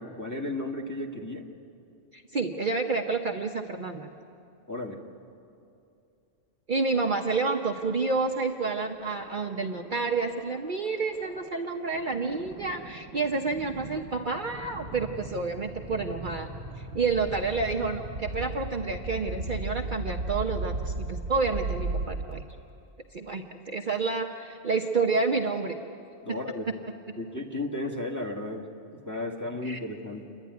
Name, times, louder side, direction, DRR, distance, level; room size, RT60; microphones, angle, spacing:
voice 1, 0.0-1.5 4.7-5.0 26.2-26.7 27.2-30.2, left 2 dB, 15° left, 0 dB, 1.7 m, -34 dB
voice 2, 2.1-4.1 6.7-16.5 16.8-22.4 23.1-25.7 29.6-29.8, right 4 dB, 45° right, 2 dB, 0.9 m, -29 dB
sound 1, 7.7-22.8, right 3 dB, 75° right, 1.4 m, -38 dB
28.0 x 12.0 x 9.5 m, 2.6 s
omnidirectional pair, 1.3 m